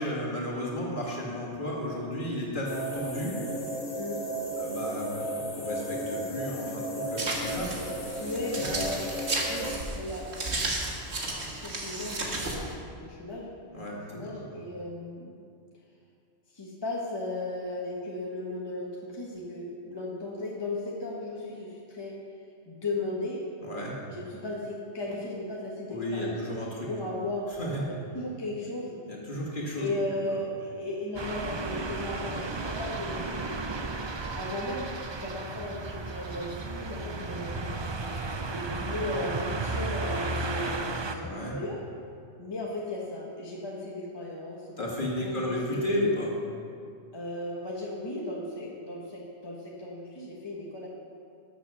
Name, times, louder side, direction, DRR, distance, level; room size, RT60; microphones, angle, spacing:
voice 1, 0.0-3.4 4.6-7.9 8.5-8.7 13.7-14.4 23.6-23.9 25.9-26.9 27.6-27.8 29.1-29.9 41.1-41.6 44.8-46.3, equal, 45° left, -3 dB, 2.4 m, -33 dB
sound 1, 2.6-9.7, right 1 dB, 70° left, 2.5 m, -34 dB
sound 2, 7.2-12.7, right 2 dB, 70° right, 1.9 m, -33 dB
voice 2, 8.2-10.3 11.6-13.5 13.9-15.3 16.5-22.2 22.7-23.4 24.1-27.5 27.9-29.0 29.8-33.6 34.3-37.9 38.4-41.8 42.4-44.9 45.2-46.0 47.1-50.9, left 2 dB, 20° left, -3 dB, 1.2 m, -36 dB
sound 3, 31.1-41.1, right 3 dB, 30° right, 0.5 m, -34 dB
13.0 x 7.5 x 6.3 m, 2.3 s
omnidirectional pair, 1.2 m